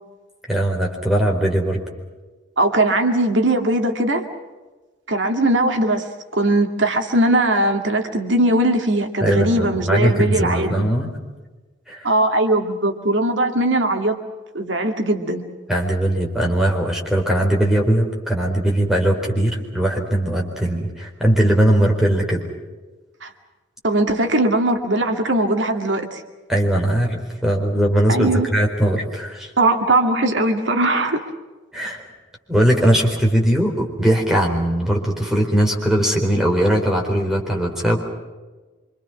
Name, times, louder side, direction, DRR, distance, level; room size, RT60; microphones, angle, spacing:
voice 1, 0.5-1.8 9.2-11.1 11.9-12.1 15.7-22.4 26.5-29.5 31.7-32.1 32.5-38.0, right 1 dB, ahead, -1 dB, 4.4 m, -19 dB
voice 2, 2.6-4.3 5.1-10.7 12.0-14.2 14.5-15.4 23.2-23.3 23.8-26.2 28.1-28.5 29.6-31.2, right 1 dB, 75° right, 5 dB, 2.2 m, -19 dB
26.0 x 26.0 x 6.1 m, 1.2 s
head